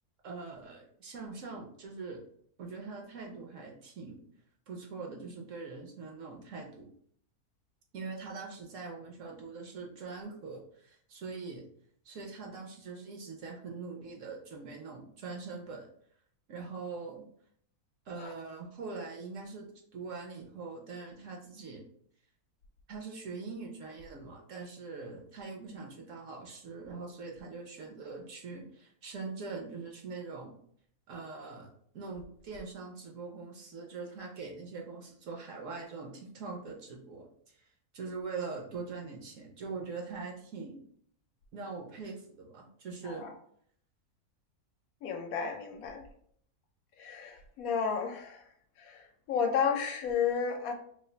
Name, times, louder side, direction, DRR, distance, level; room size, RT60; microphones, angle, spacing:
voice 1, 0.2-2.2 2.6-4.2 4.7-6.9 7.9-11.6 12.0-15.8 16.5-17.2 18.1-19.6 19.9-21.8 22.9-30.5 31.1-31.7 31.9-37.7 37.9-40.8 41.5-43.3, right 4 dB, 65° right, 1 dB, 0.9 m, -42 dB
voice 2, 45.0-46.0 47.0-48.4 48.8-50.7, left 6 dB, 70° left, 4 dB, 1.0 m, -32 dB
3.2 x 2.4 x 3.8 m, 0.64 s
omnidirectional pair, 1.6 m